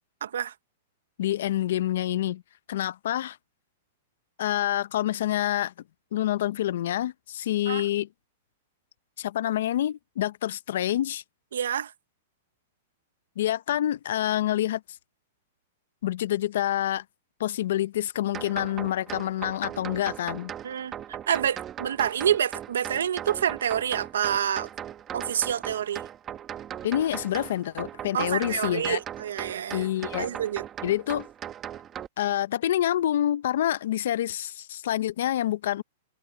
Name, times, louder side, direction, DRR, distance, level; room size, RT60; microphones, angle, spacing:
voice 1, 0.2-0.5 7.7-7.8 11.5-11.9 20.6-20.9 21.3-24.7 25.1-26.0 28.1-29.9 30.2-30.6, right 9 dB, 90° right, 1.0 m, -27 dB
voice 2, 1.2-2.4 2.7-3.4 4.4-5.7 6.1-8.1 9.2-11.2 13.4-14.8 16.0-17.0 17.4-20.5 26.8-29.0 29.7-30.4 30.8-31.3 32.2-35.8, left 12 dB, 70° left, 0.6 m, -27 dB
sound 1, 18.3-32.1, right 10 dB, 20° right, 1.4 m, -38 dB
hypercardioid pair, 150°, 0 cm